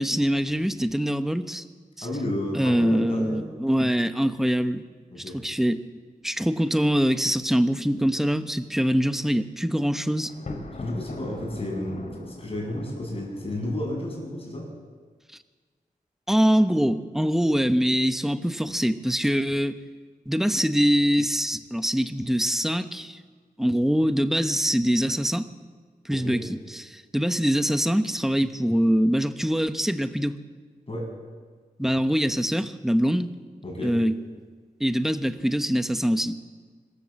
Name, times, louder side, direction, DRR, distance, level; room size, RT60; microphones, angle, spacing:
voice 1, 0.0-1.6 2.0-2.1 2.5-4.8 5.3-5.8 6.2-10.3 16.3-19.8 20.3-23.2 23.6-25.5 26.0-30.4 31.8-33.3 33.8-34.2 34.8-36.3, equal, ahead, 10 dB, 1.0 m, -23 dB
voice 2, 2.0-3.4 5.1-5.4 10.8-14.7 26.1-26.4 30.9-31.1 33.6-34.0, left 1 dB, 40° left, -1 dB, 7.9 m, -32 dB
Thunder, 10.2-14.4, left 2 dB, 55° left, 3.8 m, -40 dB
25.5 x 14.0 x 7.6 m, 1.5 s
wide cardioid pair, 90°, 15 cm